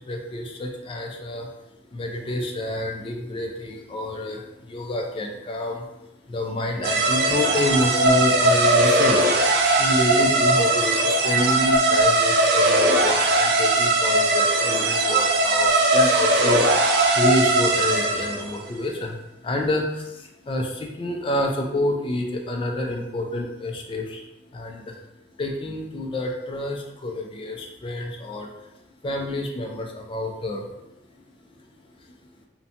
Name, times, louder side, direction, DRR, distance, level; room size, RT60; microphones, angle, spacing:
voice 1, 0.0-1.5 1.9-24.2 24.5-25.0 25.4-28.5 29.0-30.9, left 1 dB, 25° left, 2 dB, 0.3 m, -28 dB
sound 1, 6.8-18.5, right 2 dB, 55° right, 0.4 m, -19 dB
2.6 x 2.1 x 2.7 m, 0.91 s
head